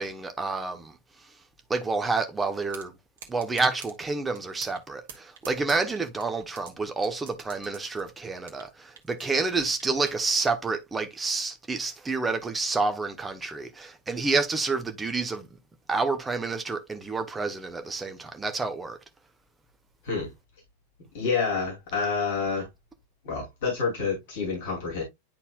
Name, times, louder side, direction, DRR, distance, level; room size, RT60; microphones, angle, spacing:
voice 1, 0.0-1.4 1.7-3.0 3.3-15.6 15.9-19.0, right 3 dB, 10° right, 1.2 m, -29 dB
sound 1, 2.7-2.9 3.2-3.9 4.3-4.8 5.1-6.7 7.0-8.7 9.0-10.2, right 7 dB, 60° right, 1.6 m, -44 dB
voice 2, 21.1-22.7 23.2-25.0, left 5 dB, 55° left, 2.8 m, -28 dB
10.5 x 4.2 x 2.3 m
figure-of-eight pair, 90°, 0 cm